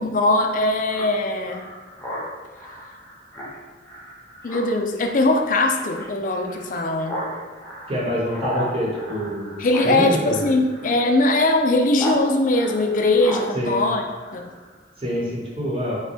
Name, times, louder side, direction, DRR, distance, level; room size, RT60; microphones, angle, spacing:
voice 1, 0.0-1.7 4.4-7.2 9.6-14.0 14.3-14.5, left 2 dB, 45° left, 4 dB, 0.4 m, -21 dB
Speech synthesizer, 0.9-12.2 12.5-14.7, right 1 dB, 10° left, 0.7 m, -35 dB
voice 2, 7.9-10.4 13.5-13.8 15.0-16.0, equal, 30° right, -5 dB, 1.0 m, -26 dB
5.1 x 2.2 x 3.4 m, 1.3 s
head